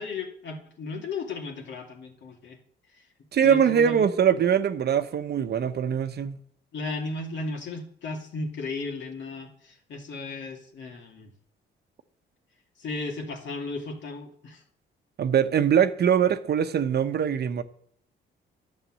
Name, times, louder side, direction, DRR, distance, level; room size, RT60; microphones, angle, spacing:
voice 1, 0.0-2.6 2.9-3.0 3.4-4.1 6.7-11.3 12.8-14.6, left 3 dB, 65° left, 2.7 m, -35 dB
voice 2, 3.3-6.4 15.2-17.6, right 8 dB, 55° right, 1.0 m, -22 dB
11.5 x 7.5 x 7.5 m
cardioid pair, 90°, 20 cm